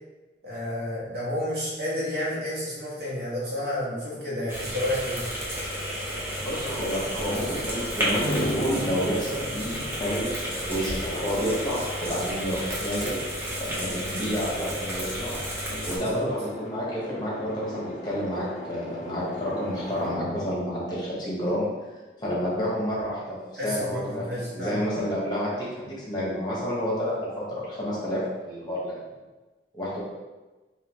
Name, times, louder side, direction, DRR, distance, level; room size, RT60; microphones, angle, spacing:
voice 1, 0.4-5.2 16.0-16.3 23.5-24.8, left 1 dB, 60° right, -7 dB, 1.3 m, -30 dB
sound 1, 4.5-16.0, equal, 15° right, 0.8 m, -32 dB
voice 2, 6.4-13.2 13.6-15.3 15.8-21.6 22.2-23.4 23.6-28.9 29.7-30.0, equal, 25° left, -7 dB, 1.1 m, -29 dB
sound 2, 8.2-22.0, left 1 dB, 40° left, 0.4 m, -39 dB
3.8 x 2.7 x 3.5 m, 1.2 s
head